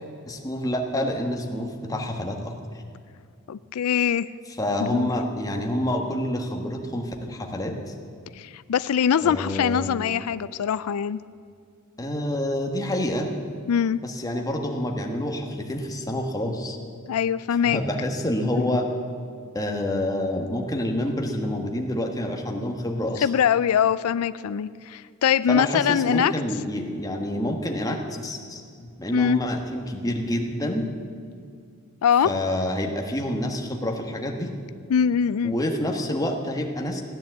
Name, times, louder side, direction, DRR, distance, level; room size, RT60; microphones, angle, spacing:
voice 1, 0.3-2.5 4.6-7.9 9.2-9.9 12.0-13.3 14.0-16.8 17.6-18.9 19.5-23.3 25.5-30.9 32.2-34.5 35.4-37.0, left 1 dB, 15° left, 2 dB, 1.4 m, -28 dB
voice 2, 3.5-4.3 4.9-5.1 8.4-11.2 13.7-14.0 17.1-17.8 18.7-18.8 23.2-26.3 29.1-29.4 32.0-32.3 34.9-35.5, left 8 dB, 90° left, 16 dB, 0.4 m, -22 dB
16.0 x 10.0 x 7.8 m, 2.3 s
head